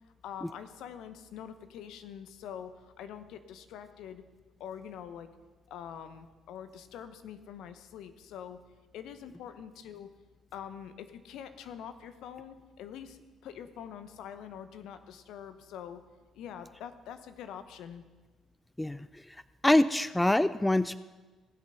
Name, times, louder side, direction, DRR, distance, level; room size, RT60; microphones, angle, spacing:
voice 1, 0.2-4.2 4.6-5.3 5.7-8.6 8.9-10.1 10.5-16.0 16.3-18.0, left 9 dB, 65° left, 10 dB, 0.8 m, -45 dB
voice 2, 19.6-21.0, left 1 dB, 10° left, 15 dB, 0.4 m, -24 dB
17.5 x 7.8 x 5.6 m, 1.3 s
hypercardioid pair, 50°, 0 cm